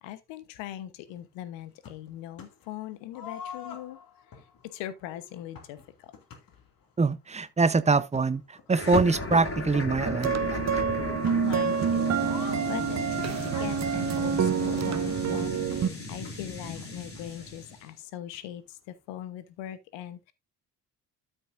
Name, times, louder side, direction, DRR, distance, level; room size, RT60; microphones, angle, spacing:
voice 1, 0.0-4.0 4.7-6.1 11.3-20.3, left 12 dB, 65° left, 1.1 m, -41 dB
sound 1, 1.8-2.7 3.1-6.9 7.6-7.7 8.0-9.9 10.5-11.7 12.1-14.9 15.7-17.7 18.0-18.1 18.3-18.4 19.1-19.2, left 6 dB, 45° left, 2.4 m, -47 dB
voice 2, 7.0-10.8, right 4 dB, 15° right, 0.8 m, -25 dB
sound 2, 8.7-17.8, left 2 dB, 30° left, 6.2 m, -36 dB
sound 3, 10.1-15.9, right 7 dB, 35° right, 1.0 m, -27 dB
12.5 x 6.3 x 2.6 m
hypercardioid pair, 50°, 47 cm